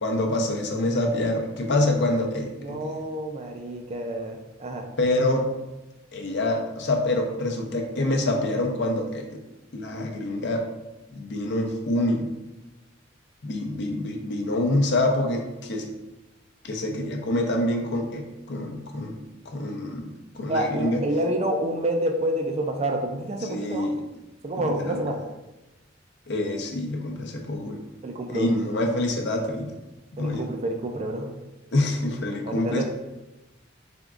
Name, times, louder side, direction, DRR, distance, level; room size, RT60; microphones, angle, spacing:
voice 1, 0.0-2.9 5.0-5.5 6.1-9.4 9.7-10.6 11.1-12.3 13.4-15.9 16.6-19.2 19.5-21.0 23.5-24.0 24.6-25.0 26.3-27.8 28.3-29.7 30.2-30.5 31.7-32.8, left 1 dB, 60° left, 2 dB, 0.6 m, -26 dB
voice 2, 2.6-4.9 20.5-23.9 24.4-25.2 28.0-28.5 30.2-31.3 32.4-32.8, right 1 dB, 30° right, 3 dB, 0.4 m, -28 dB
3.9 x 3.5 x 2.4 m, 1.0 s
head